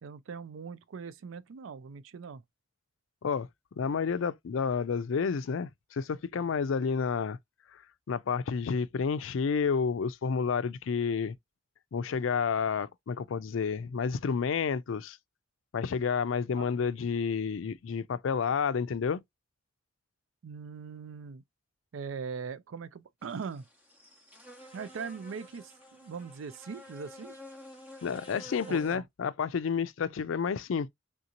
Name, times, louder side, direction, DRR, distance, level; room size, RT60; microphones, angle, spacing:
voice 1, 0.0-2.4 16.5-16.7 20.4-21.4 21.9-23.6 24.7-27.3 28.6-29.0, right 5 dB, 80° right, 0.4 m, -41 dB
voice 2, 3.8-7.4 7.7-7.8 8.1-11.4 11.9-15.2 15.7-19.2 28.0-30.9, left 6 dB, 80° left, 0.4 m, -30 dB
sound 1, 23.2-29.0, left 1 dB, 10° right, 0.7 m, -50 dB
3.6 x 2.8 x 2.5 m
head